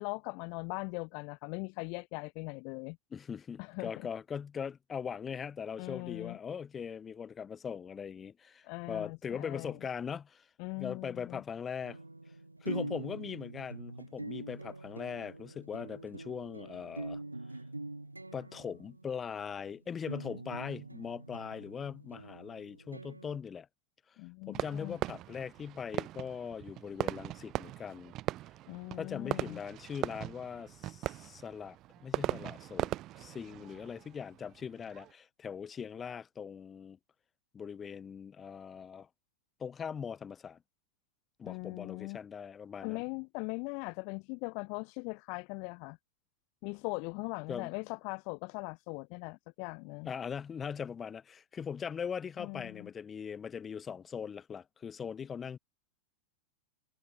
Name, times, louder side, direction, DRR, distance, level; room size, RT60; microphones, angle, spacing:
voice 1, 0.0-3.0 3.6-3.9 5.8-6.4 8.6-9.8 10.6-11.4 24.2-25.0 28.7-29.6 41.4-42.2 42.8-46.0 46.6-50.1 52.4-52.9, left 36 dB, 45° left, 1.1 m, -40 dB
voice 2, 3.1-10.5 10.8-12.0 12.6-17.2 18.3-23.7 24.5-28.1 29.0-31.8 32.0-37.0 37.5-39.1 39.6-40.6 41.4-43.0 47.5-47.7 50.0-55.6, left 7 dB, 20° left, 2.8 m, -40 dB
sound 1, 11.8-23.4, right 2 dB, 85° right, 3.0 m, -44 dB
Fireworks, 24.5-35.1, right 15 dB, 35° right, 2.2 m, -39 dB
figure-of-eight pair, 90°, 0 cm